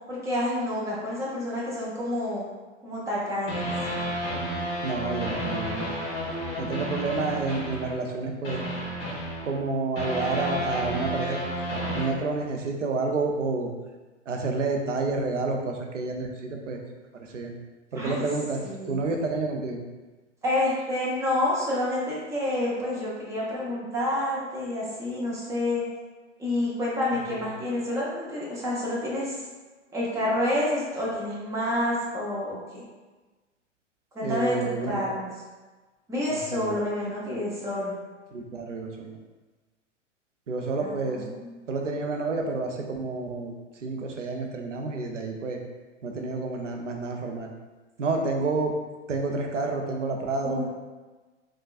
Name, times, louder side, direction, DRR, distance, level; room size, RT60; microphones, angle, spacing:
voice 1, 0.1-2.5 2.8-3.7 18.0-18.2 18.6-19.1 20.4-25.8 26.4-29.4 29.9-32.8 34.1-35.3 36.1-37.9 40.8-41.6 50.4-50.6, left 1 dB, 10° right, -6 dB, 0.5 m, -28 dB
sound 1, 3.5-8.2 8.4-12.0, equal, 30° left, 1.4 m, -31 dB
voice 2, 4.8-6.0 6.6-8.6 9.4-11.4 11.9-13.7 14.3-16.8 17.3-17.5 17.9-18.6 18.9-19.8 27.3-27.4 34.2-35.0 36.5-36.8 38.3-39.2 40.5-41.2 41.7-43.5 43.8-45.6 46.0-47.5 48.0-48.7 49.1-50.6, right 3 dB, 80° right, 2 dB, 0.5 m, -29 dB
3.5 x 2.2 x 2.3 m, 1.3 s
figure-of-eight pair, 100°, 37 cm